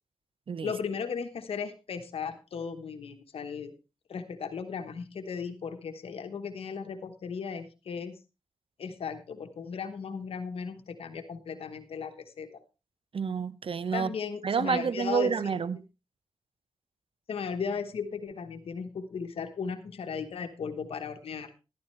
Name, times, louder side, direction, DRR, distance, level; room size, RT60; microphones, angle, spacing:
voice 1, 0.6-3.7 4.1-8.1 8.8-12.5 13.9-15.3 17.3-21.5, left 6 dB, 90° left, 1.1 m, -36 dB
voice 2, 13.1-14.1 14.4-15.8, right 6 dB, 70° right, 0.8 m, -29 dB
13.0 x 12.5 x 3.2 m
cardioid pair, 45°, 10 cm